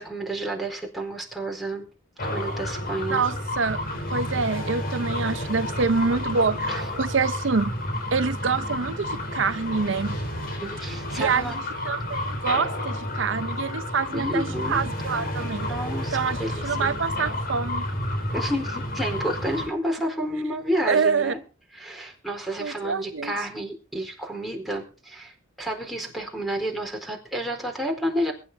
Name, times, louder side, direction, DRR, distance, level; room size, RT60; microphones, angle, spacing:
voice 1, 0.0-1.9 2.2-3.2 10.6-11.6 14.1-14.8 15.6-16.9 18.3-21.4 21.7-28.3, right 1 dB, ahead, 4.4 m, -30 dB
sound 1, 2.2-19.7, left 1 dB, 50° left, 4.0 m, -30 dB
voice 2, 3.1-3.8 4.1-7.8 8.1-10.2 11.2-15.7 16.1-16.4 16.6-17.9 20.9-21.3 22.6-23.3, right 5 dB, 70° right, 0.7 m, -26 dB
22.5 x 10.5 x 4.0 m
head